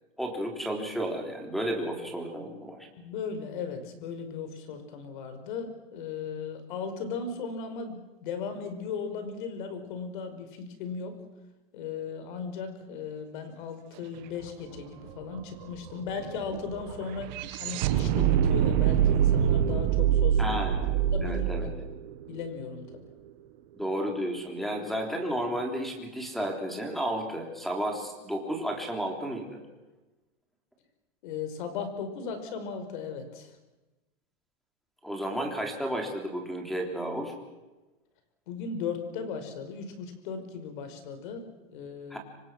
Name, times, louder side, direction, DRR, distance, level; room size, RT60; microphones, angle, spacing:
voice 1, 0.2-2.8 20.4-20.9 21.2-21.7 23.7-29.6 35.0-37.3 42.1-42.2, right 1 dB, ahead, 3 dB, 3.4 m, -32 dB
voice 2, 3.0-11.2 11.7-17.3 17.6-20.6 21.1-21.7 22.3-23.0 31.2-33.5 38.5-41.4 41.7-42.2, left 5 dB, 55° left, 8 dB, 5.3 m, -37 dB
sound 1, 14.4-14.5 14.7-23.0, right 9 dB, 50° right, 1.6 m, -26 dB
26.5 x 25.0 x 6.3 m, 1.1 s
supercardioid pair, 170°, 30 cm